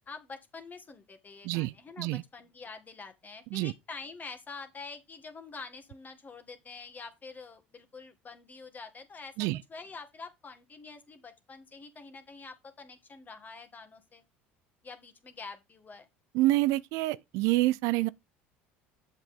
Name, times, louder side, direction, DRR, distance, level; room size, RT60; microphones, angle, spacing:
voice 1, 0.1-14.2 14.8-16.1, left 4 dB, 30° left, 1.8 m, -46 dB
voice 2, 1.4-2.2 3.5-3.7 9.4-9.6 16.3-18.1, right 18 dB, 65° right, 0.4 m, -27 dB
7.5 x 7.3 x 3.6 m
hypercardioid pair, 75°, 6 cm